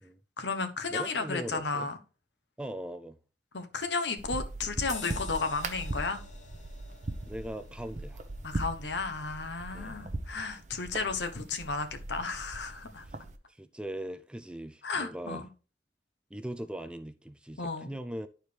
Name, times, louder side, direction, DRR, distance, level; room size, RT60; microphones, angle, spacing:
voice 1, 0.4-2.0 3.5-6.2 8.4-13.1 14.8-15.4 17.6-17.9, left 4 dB, 80° left, 1.0 m, -33 dB
voice 2, 0.9-1.9 2.6-3.2 7.2-8.2 9.7-10.1 13.1-13.2 13.5-15.4 16.3-18.3, right 1 dB, 5° right, 0.3 m, -40 dB
sound 1, 4.2-13.3, right 2 dB, 40° right, 0.8 m, -40 dB
sound 2, 4.9-9.8 10.3-10.5, left 5 dB, 40° left, 1.0 m, -49 dB
11.5 x 4.6 x 3.3 m
head